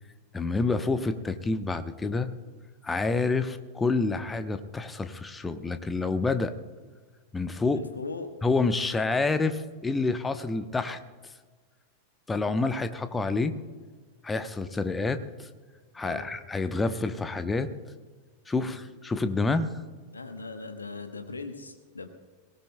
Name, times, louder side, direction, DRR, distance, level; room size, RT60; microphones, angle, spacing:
voice 1, 0.3-2.3 2.8-6.5 7.3-7.8 8.4-11.0 12.3-13.5 14.2-15.5 15.9-17.7 18.5-19.7, left 3 dB, 10° left, 10 dB, 0.8 m, -28 dB
voice 2, 7.7-8.3 16.0-16.3 18.5-18.7 20.1-22.1, left 3 dB, 75° left, 8 dB, 1.1 m, -39 dB
21.5 x 18.0 x 2.2 m, 1.5 s
figure-of-eight pair, 90°, 0 cm